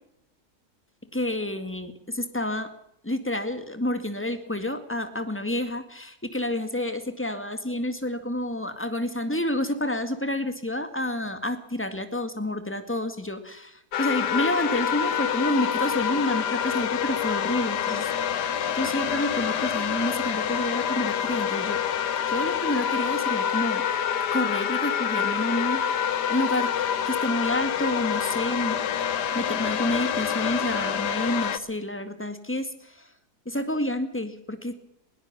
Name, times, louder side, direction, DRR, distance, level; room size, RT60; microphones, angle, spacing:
voice 1, 1.1-2.7 3.0-18.4 18.8-21.8 22.3-23.8 24.3-25.8 26.3-26.7 27.1-28.8 29.3-33.1 33.5-34.8, left 1 dB, 5° left, 9 dB, 2.0 m, -29 dB
sound 1, 13.9-31.6, left 8 dB, 90° left, 1.7 m, -27 dB
21.5 x 17.5 x 7.2 m, 0.77 s
omnidirectional pair, 1.7 m